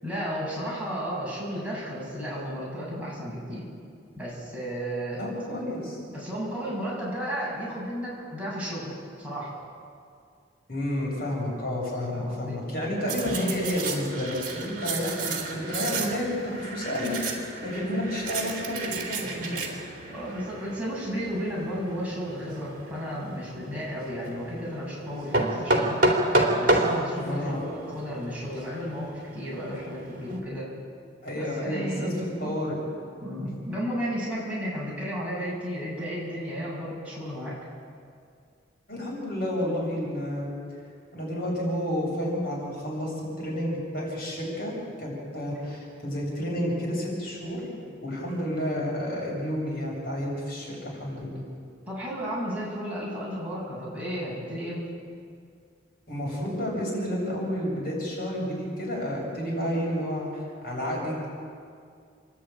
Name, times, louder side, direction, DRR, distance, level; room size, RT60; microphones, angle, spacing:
voice 1, 0.0-3.7 4.2-5.2 6.1-9.5 12.1-12.6 13.1-13.4 20.1-26.0 26.5-30.7 31.3-32.1 32.4-32.5 33.2-37.6 51.9-54.9, equal, 5° right, -7 dB, 7.7 m, -33 dB
voice 2, 5.2-6.0 10.7-19.6 27.2-27.6 31.2-32.1 32.4-32.8 38.9-40.5 41.1-51.4 56.1-61.3, equal, 55° left, -3 dB, 7.4 m, -30 dB
sound 1, 13.1-30.4, right 2 dB, 45° right, 3.2 m, -31 dB
29.0 x 11.5 x 9.2 m, 2.3 s
head